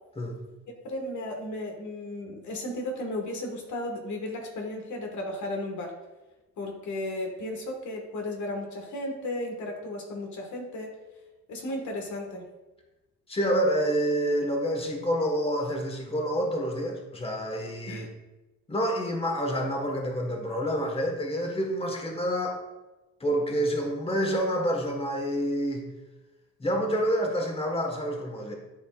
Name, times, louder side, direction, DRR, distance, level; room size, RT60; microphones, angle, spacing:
voice 1, 0.8-5.9 6.6-11.0 11.5-12.4 17.9-18.1, left 1 dB, 70° left, 1 dB, 1.6 m, -34 dB
voice 2, 13.3-18.1 18.7-22.6 23.2-25.9 26.6-28.5, equal, 20° left, 2 dB, 1.4 m, -28 dB
11.5 x 4.3 x 2.4 m, 1.1 s
cardioid pair, 90°, 30 cm